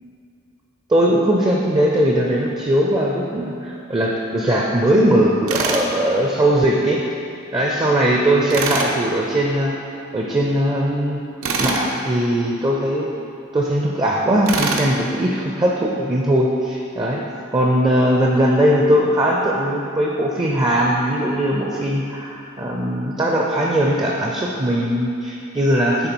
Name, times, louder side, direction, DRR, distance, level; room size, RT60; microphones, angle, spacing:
voice 1, 0.9-3.5 3.9-7.0 7.5-9.7 10.1-11.2 11.6-13.1 13.5-17.2 17.5-26.1, right 1 dB, 20° right, -2 dB, 0.4 m, -19 dB
Tools, 5.5-5.9 8.5-8.9 11.4-11.9 14.5-14.9, right 3 dB, 70° right, 0.6 m, -23 dB
8.0 x 3.1 x 4.5 m, 2.8 s
head